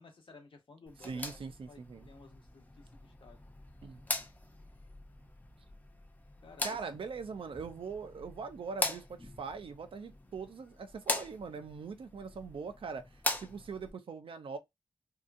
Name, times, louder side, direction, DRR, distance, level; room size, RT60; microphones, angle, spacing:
voice 1, 0.0-1.8 2.1-3.4 3.9-4.3 6.4-7.0, left 3 dB, 80° left, 0.9 m, -56 dB
sound 1, 0.9-13.9, left 1 dB, 20° left, 0.5 m, -41 dB
voice 2, 1.0-2.1 3.8-4.0 6.6-13.1 13.4-14.6, right 5 dB, 85° right, 0.5 m, -42 dB
2.7 x 2.3 x 2.5 m
wide cardioid pair, 85°, 9 cm